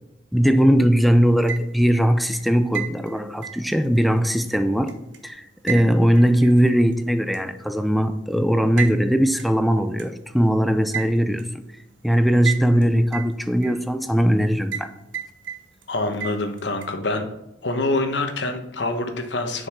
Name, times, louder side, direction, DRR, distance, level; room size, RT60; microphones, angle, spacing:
voice 1, 0.3-5.0 5.2-11.5 12.0-14.9, equal, ahead, 0.4 m, -19 dB
sound 1, 1.3-1.9 2.3-5.2 5.7-6.9 7.3-7.4 8.8-9.0 9.4-9.5 10.0-10.1 10.9-11.5 12.4-12.8 13.1-14.0 14.7-14.9 15.1-15.9 16.2-16.9, right 9 dB, 85° right, 0.9 m, -32 dB
voice 2, 15.9-17.2 17.6-19.7, left 2 dB, 70° left, 1.1 m, -25 dB
7.1 x 5.3 x 3.7 m
head